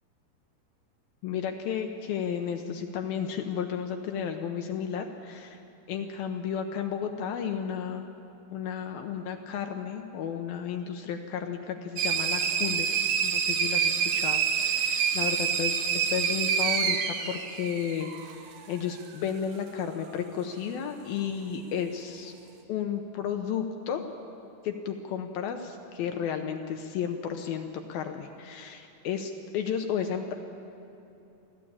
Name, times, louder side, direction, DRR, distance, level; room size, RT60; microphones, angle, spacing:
voice 1, 1.2-5.6 5.9-8.1 8.5-12.9 13.2-18.1 18.7-22.3 22.7-24.1 24.6-30.3, left 8 dB, 75° left, 5 dB, 2.4 m, -33 dB
sound 1, 12.0-18.4, right 7 dB, 70° right, 3.0 m, -27 dB
23.0 x 15.0 x 8.7 m, 2.9 s
omnidirectional pair, 4.8 m